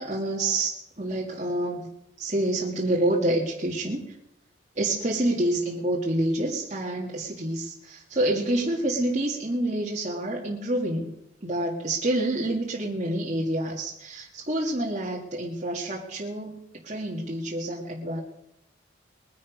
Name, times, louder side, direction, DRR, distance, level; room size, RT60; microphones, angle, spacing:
voice 1, 0.0-1.9 2.2-4.2 4.8-11.1 11.4-18.2, right 1 dB, 35° right, -4 dB, 2.2 m, -28 dB
22.0 x 9.8 x 5.3 m, 0.83 s
head